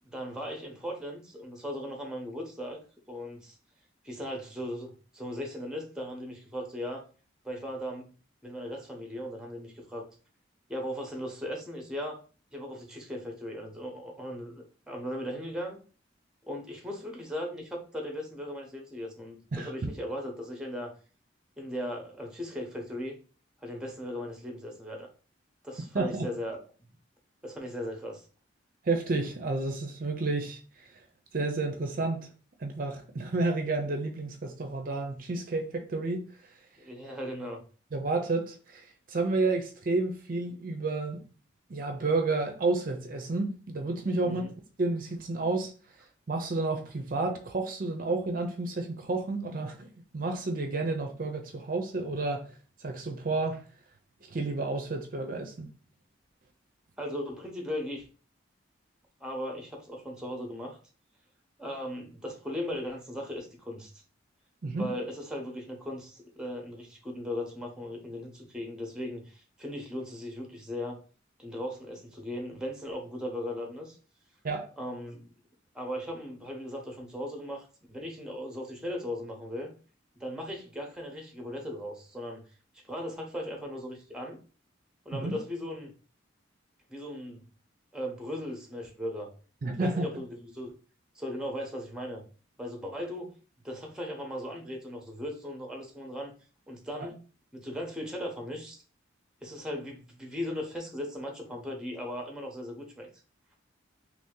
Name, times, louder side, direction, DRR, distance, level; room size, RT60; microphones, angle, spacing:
voice 1, 0.0-2.8 3.1-3.6 4.0-7.0 7.4-8.1 8.4-10.1 10.7-12.2 12.5-15.8 16.4-20.9 21.6-23.2 23.6-25.1 25.6-26.9 27.4-28.3 36.8-37.6 44.2-44.5 57.0-58.1 59.2-60.8 61.6-63.9 64.7-71.0 71.4-74.0 74.8-75.3 75.7-79.7 80.2-82.5 82.7-84.4 85.0-85.9 86.9-87.4 87.9-89.3 89.8-90.7 91.1-92.2 92.6-93.3 93.6-96.3 96.7-97.2 97.5-98.8 99.4-103.1, equal, 5° right, 0.6 m, -38 dB
voice 2, 19.5-19.9 25.9-26.3 28.8-30.6 31.3-32.3 32.6-36.3 37.9-41.2 41.7-44.5 44.8-45.7 46.3-49.9 50.1-52.5 52.8-53.6 54.3-55.7 64.6-64.9 74.4-74.7 85.1-85.4 89.6-90.1 97.0-97.1, right 3 dB, 45° right, 0.5 m, -30 dB
3.0 x 2.7 x 3.6 m
head